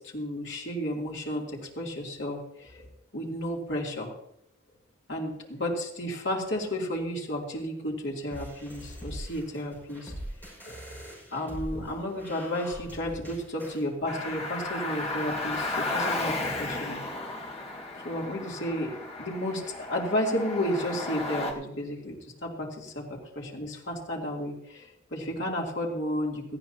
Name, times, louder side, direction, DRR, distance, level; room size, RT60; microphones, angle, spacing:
voice 1, 0.1-2.9 3.1-4.1 5.1-10.1 10.6-10.8 11.3-17.0 18.0-18.9 19.2-26.4, equal, 65° left, -2 dB, 3.1 m, -32 dB
sound 1, 8.3-13.9, equal, 10° left, 5.9 m, -42 dB
Car, 14.0-21.5, left 2 dB, 30° left, 1.7 m, -34 dB
18.5 x 14.0 x 2.9 m, 0.78 s
head